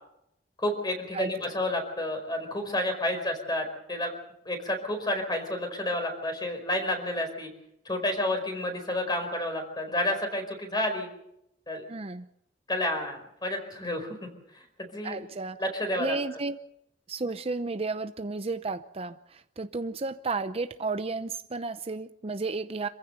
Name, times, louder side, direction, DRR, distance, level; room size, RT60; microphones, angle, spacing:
voice 1, 0.6-4.1 4.4-7.5 7.8-11.1 11.7-11.8 12.7-14.3 14.5-14.6 14.9-15.2 15.6-16.1, left 1 dB, 25° left, 5 dB, 4.8 m, -30 dB
voice 2, 11.9-12.3 15.0-15.6 15.9-16.6 17.1-22.9, right 3 dB, 35° right, 10 dB, 0.7 m, -33 dB
27.0 x 15.5 x 6.8 m, 0.78 s
head